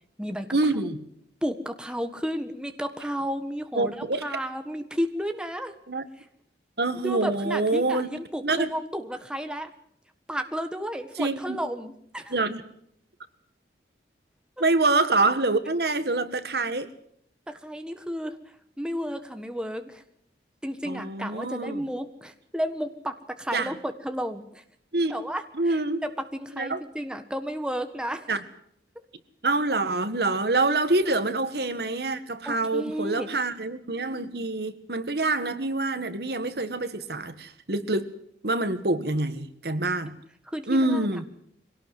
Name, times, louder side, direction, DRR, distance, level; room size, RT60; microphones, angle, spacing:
voice 1, 0.5-1.0 3.7-4.2 5.9-6.0 6.8-8.1 8.4-8.7 11.2-11.6 12.3-12.6 14.6-16.9 20.9-21.8 23.5-23.7 24.9-25.2 25.6-26.0 26.6-26.8 28.3-28.4 29.4-38.1 38.4-40.2 40.7-41.3, right 2 dB, 60° right, 11 dB, 1.8 m, -26 dB
voice 2, 1.4-3.9 4.2-5.7 6.2-6.3 7.0-9.7 10.3-12.3 17.5-20.0 20.6-24.6 25.1-28.4 32.4-33.3 40.4-41.2, equal, 5° right, 7 dB, 1.5 m, -32 dB
23.5 x 18.0 x 7.8 m, 0.68 s
head